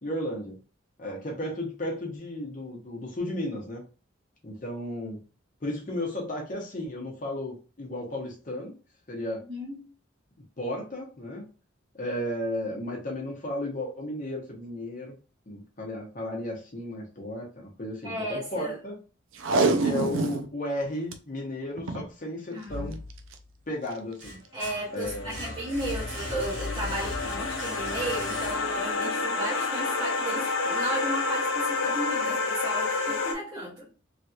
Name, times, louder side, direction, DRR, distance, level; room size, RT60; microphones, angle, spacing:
voice 1, 0.0-0.6 1.0-3.8 4.4-5.2 5.6-8.8 9.1-9.4 10.6-11.5 12.0-15.1 15.5-18.9 19.8-23.0 23.7-24.4 24.9-25.4, left 1 dB, 40° left, 0.8 m, -34 dB
voice 2, 9.5-9.9 18.0-18.8 22.5-22.9 24.5-33.9, right 1 dB, 25° right, 0.8 m, -34 dB
Packing tape duct tape, 19.3-20.5 20.8-20.9 21.1-21.2 21.8-22.1 23.1-23.3 23.9-24.0, right 3 dB, 75° right, 0.5 m, -25 dB
sound 1, 22.7-23.5 23.9-29.0, left 1 dB, 60° right, 1.4 m, -38 dB
sound 2, 24.9-33.3, left 3 dB, 75° left, 0.7 m, -30 dB
3.2 x 2.8 x 2.4 m
head